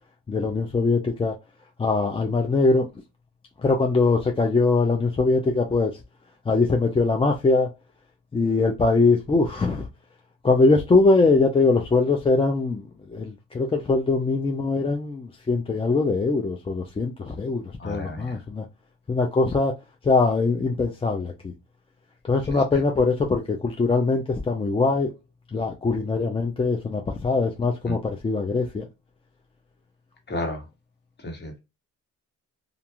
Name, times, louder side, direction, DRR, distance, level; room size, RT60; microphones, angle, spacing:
voice 1, 0.3-1.4 1.8-2.9 3.6-6.0 6.5-7.7 8.3-9.9 10.4-12.8 13.1-18.7 19.1-19.7 20.0-21.5 22.2-25.1 25.5-28.8, left 3 dB, 20° left, 0.5 m, -22 dB
voice 2, 17.8-18.4 22.5-22.6 27.8-27.9 30.3-30.6 31.2-31.6, left 1 dB, 35° left, 1.3 m, -32 dB
2.5 x 2.3 x 2.9 m
cardioid pair, 90°, 30 cm